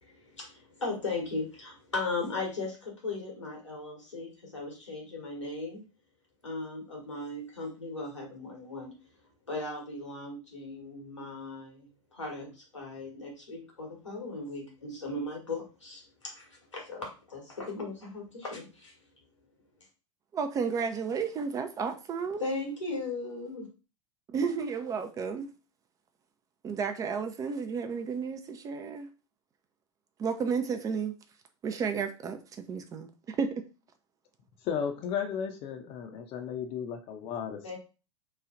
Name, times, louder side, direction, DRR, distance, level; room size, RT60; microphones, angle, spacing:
voice 1, 0.0-5.8 6.4-8.9 9.5-19.0 22.4-23.7 37.6-37.8, left 3 dB, 85° left, 1.4 m, -37 dB
voice 2, 20.3-22.4 24.3-25.5 26.6-29.1 30.2-31.1 31.6-33.5, right 5 dB, 20° right, 0.4 m, -32 dB
voice 3, 34.6-37.8, left 7 dB, 40° left, 0.6 m, -34 dB
3.1 x 2.3 x 3.6 m
figure-of-eight pair, 85°, 15 cm